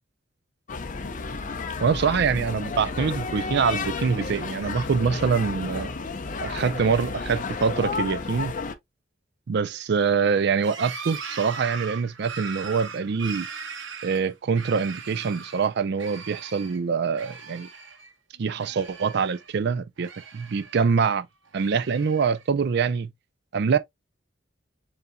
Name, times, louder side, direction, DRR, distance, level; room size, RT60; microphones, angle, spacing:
sound 1, 0.7-8.7, left 4 dB, 40° left, 0.6 m, -32 dB
voice 1, 1.8-5.9 6.4-8.5 9.5-13.5 14.0-17.7 18.4-21.3 21.5-23.1 23.5-23.8, right 5 dB, 60° right, 0.4 m, -24 dB
sound 2, 10.6-15.7 16.0-16.8 17.1-18.1 18.4-19.6 20.0-21.0 21.5-22.5, right 6 dB, 80° right, 1.2 m, -39 dB
6.8 x 2.7 x 2.2 m
head